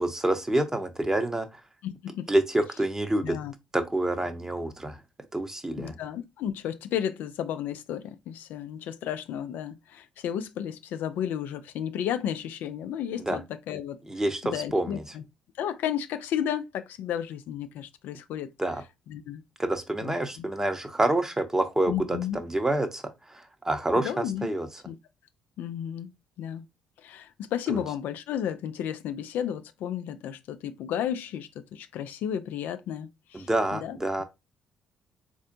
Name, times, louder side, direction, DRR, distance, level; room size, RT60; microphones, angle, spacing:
voice 1, 0.0-1.5 2.3-3.4 3.7-5.0 5.3-5.9 13.2-13.4 14.1-15.0 18.6-18.8 19.6-23.0 23.3-24.7 27.7-27.8 33.3-34.2, right 1 dB, 15° right, 0.8 m, -27 dB
voice 2, 1.8-2.3 3.2-3.5 5.8-15.2 15.6-18.5 19.1-19.4 20.0-20.5 21.9-22.4 24.0-24.5 24.9-25.0 25.6-26.1 26.4-26.7 27.0-34.0, left 9 dB, 65° left, 0.3 m, -33 dB
4.2 x 2.5 x 2.6 m
hypercardioid pair, 45°, 3 cm